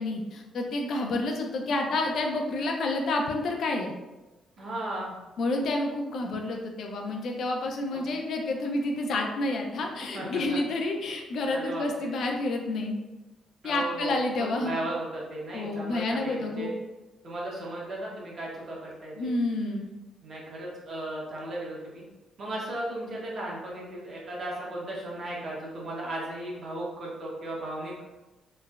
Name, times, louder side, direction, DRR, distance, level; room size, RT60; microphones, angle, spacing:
voice 1, 0.0-3.9 5.4-13.0 13.6-14.8 15.5-16.7 19.2-19.9, left 2 dB, 65° left, 2 dB, 0.4 m, -29 dB
voice 2, 4.6-5.2 7.9-8.1 10.0-10.6 11.5-12.1 13.6-16.7 17.2-19.3 20.2-22.0 22.4-27.9, right 1 dB, 50° right, -4 dB, 0.9 m, -36 dB
3.2 x 2.0 x 2.3 m, 1.1 s
cardioid pair, 90°, 0 cm